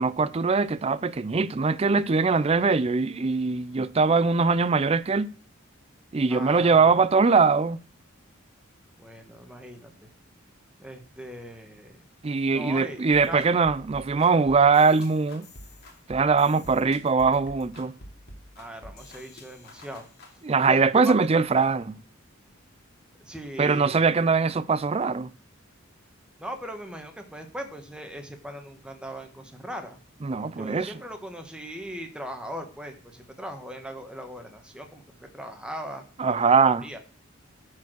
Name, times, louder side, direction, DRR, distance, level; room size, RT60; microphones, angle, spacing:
voice 1, 0.0-5.3 6.1-7.8 12.2-15.5 16.1-17.9 20.4-21.9 23.6-25.3 30.2-30.9 36.2-36.9, right 4 dB, 30° right, 0.4 m, -22 dB
voice 2, 6.3-6.9 9.0-10.1 10.8-11.9 12.5-13.4 18.6-20.1 20.7-21.1 23.2-24.0 26.4-30.0 30.6-37.0, equal, 5° right, 1.4 m, -39 dB
sound 1, 13.1-20.3, left 1 dB, 50° left, 2.6 m, -47 dB
12.5 x 4.7 x 6.3 m
head